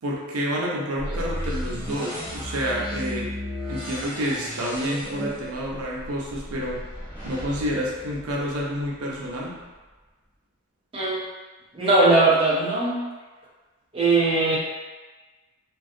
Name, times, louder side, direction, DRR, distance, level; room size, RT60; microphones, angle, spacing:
voice 1, 0.0-3.3 3.7-6.8 7.2-9.5, equal, 85° right, -3 dB, 0.5 m, -29 dB
sound 1, 1.0-8.9, equal, 25° left, 1.1 m, -34 dB
voice 2, 10.9-11.2 11.7-13.0 13.9-14.6, right 2 dB, 25° right, -7 dB, 0.4 m, -19 dB
2.4 x 2.3 x 2.6 m, 1.3 s
head